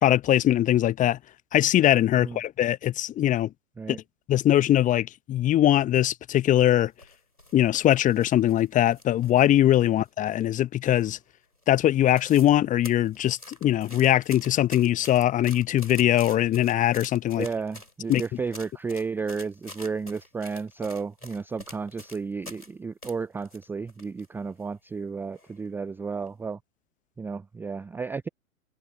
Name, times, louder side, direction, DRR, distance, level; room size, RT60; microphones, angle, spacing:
voice 1, 0.0-1.2 1.5-3.5 3.9-4.0 4.3-6.9 7.5-11.2 11.7-17.5 18.1-18.2, left 12 dB, 20° left, 1.1 m, -21 dB
sound 1, 6.8-9.5 9.8-10.6 10.9-11.3 11.6-11.7 11.9-12.6 12.8-22.7 23.0-24.3 24.6-24.7 25.3-25.7 26.1-26.3, left 1 dB, 90° left, 6.9 m, -46 dB
voice 2, 17.3-26.6 27.2-28.3, right 5 dB, 5° right, 0.6 m, -33 dB
figure-of-eight pair, 110°, 44 cm